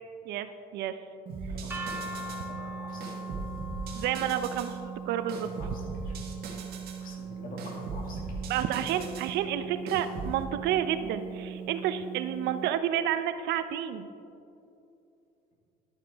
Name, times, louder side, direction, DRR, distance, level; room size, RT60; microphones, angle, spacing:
sound 1, 1.3-12.7, right 8 dB, 30° right, 0.4 m, -41 dB
sound 2, 1.3-2.5 3.0-4.8 5.3-7.1 7.6-9.3 9.9-10.4, right 3 dB, 65° right, 1.5 m, -39 dB
voice 1, 1.5-3.3 5.4-6.2 7.0-8.5, left 2 dB, 55° left, -2 dB, 2.5 m, -46 dB
sound 3, 1.7-7.6, left 1 dB, 15° right, 1.8 m, -43 dB
voice 2, 3.9-5.5 8.5-14.1, right 10 dB, 85° right, 11 dB, 0.6 m, -30 dB
11.5 x 9.1 x 3.5 m, 2.7 s
cardioid pair, 110°, 17 cm